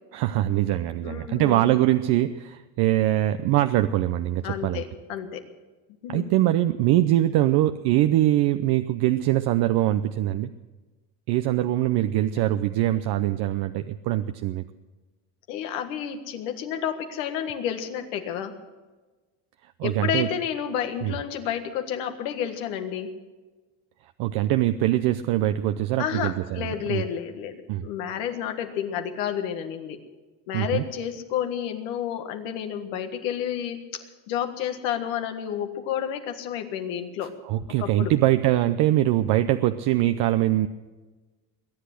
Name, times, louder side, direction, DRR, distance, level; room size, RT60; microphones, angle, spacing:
voice 1, 0.1-4.8 6.1-10.5 11.3-14.6 19.8-20.3 21.0-21.1 24.2-27.0 27.7-27.9 30.5-30.8 37.4-40.7, right 14 dB, 75° right, 9 dB, 0.7 m, -23 dB
voice 2, 1.0-1.7 4.4-5.5 6.0-6.3 15.5-18.5 19.8-23.2 26.0-30.0 30.5-37.3 37.8-38.1, left 9 dB, 90° left, 6 dB, 1.6 m, -30 dB
22.0 x 8.2 x 7.7 m, 1.3 s
supercardioid pair, 90°, 40 cm